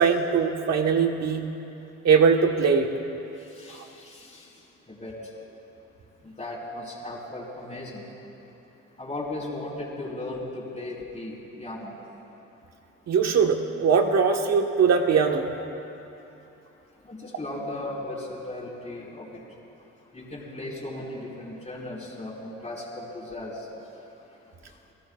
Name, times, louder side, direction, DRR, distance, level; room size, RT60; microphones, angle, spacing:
voice 1, 0.0-1.4 2.0-2.9 13.1-15.5, right 6 dB, 60° right, 3 dB, 1.4 m, -21 dB
voice 2, 3.5-4.5 4.9-5.2 6.2-8.0 9.0-11.9 17.0-19.4 20.1-23.7, left 2 dB, 20° left, -7 dB, 4.4 m, -36 dB
29.5 x 17.0 x 2.4 m, 2.9 s
cardioid pair, 90°, 30 cm